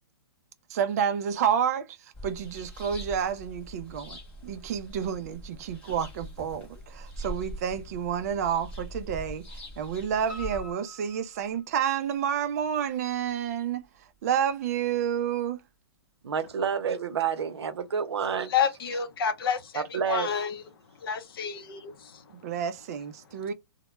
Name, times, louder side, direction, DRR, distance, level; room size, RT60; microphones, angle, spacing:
voice 1, 0.7-1.9 2.2-13.9 14.2-15.6 22.3-23.5, right 8 dB, 40° right, 0.4 m, -29 dB
sound 1, 2.1-10.7, equal, 10° left, 0.7 m, -42 dB
Piano, 10.3-12.2 12.6-13.5 13.8-13.9 14.4-14.5 14.7-14.8, left 2 dB, 15° right, 0.9 m, -46 dB
voice 2, 16.2-18.5 19.7-20.3, right 7 dB, 80° right, 0.6 m, -29 dB
voice 3, 18.5-20.6 21.0-22.2, left 7 dB, 60° left, 0.6 m, -29 dB
2.1 x 2.1 x 2.9 m
hypercardioid pair, 155°, 14 cm